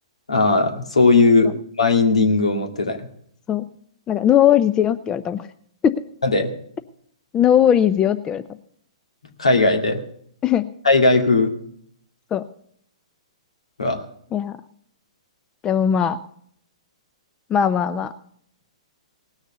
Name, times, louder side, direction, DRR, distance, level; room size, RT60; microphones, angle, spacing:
voice 1, 0.3-1.5 1.8-3.0 6.2-6.5 9.4-10.0 10.8-11.5 13.8-14.0, left 3 dB, 85° left, 3 dB, 2.2 m, -17 dB
voice 2, 4.1-5.5 5.8-6.0 7.3-8.4 10.4-10.7 12.3-12.4 14.3-14.6 15.6-16.2 17.5-18.1, left 9 dB, 20° left, 12 dB, 0.5 m, -18 dB
18.0 x 6.6 x 6.8 m, 0.65 s
hypercardioid pair, 125°, 3 cm